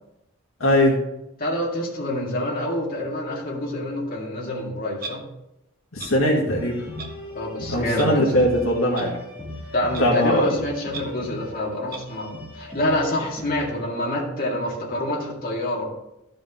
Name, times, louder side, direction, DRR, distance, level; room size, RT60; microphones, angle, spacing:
voice 1, 0.6-1.0 5.9-6.7 7.7-9.1 10.0-10.6, left 1 dB, 65° left, -3 dB, 1.8 m, -20 dB
voice 2, 1.4-5.3 7.3-8.3 9.7-15.9, left 1 dB, 40° left, -4 dB, 2.1 m, -27 dB
Clock, 5.0-5.1 6.0-6.1 7.0-7.1 7.9-8.1 8.9-9.1 9.9-10.0 10.9-11.0 11.9-12.0, right 4 dB, 45° right, 1.0 m, -35 dB
sound 1, 6.4-13.8, left 1 dB, 10° right, 2.5 m, -38 dB
12.5 x 5.1 x 3.7 m, 0.88 s
head